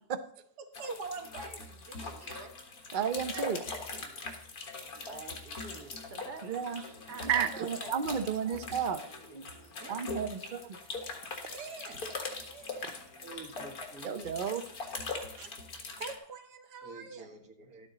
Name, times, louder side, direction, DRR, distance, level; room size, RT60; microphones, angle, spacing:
voice 1, 0.6-2.5 3.3-3.6 3.9-4.2 4.8-6.5 6.7-8.6 8.9-9.1 9.4-9.5 9.8-10.1 10.4-10.5 11.3-12.1 12.5-13.1 15.2-15.5 16.0-17.3, right 4 dB, 80° right, 7 dB, 1.7 m, -46 dB
sound 1, 0.7-16.2, left 3 dB, 65° left, 2.1 m, -42 dB
voice 2, 2.9-3.6 6.4-6.8 7.2-9.0 9.3-9.4 9.9-10.8 14.0-14.6, right 7 dB, 50° right, 9 dB, 0.6 m, -32 dB
voice 3, 13.2-14.3 16.8-17.9, right 3 dB, 65° right, 4 dB, 2.0 m, -48 dB
12.0 x 8.7 x 3.9 m, 0.69 s
omnidirectional pair, 1.7 m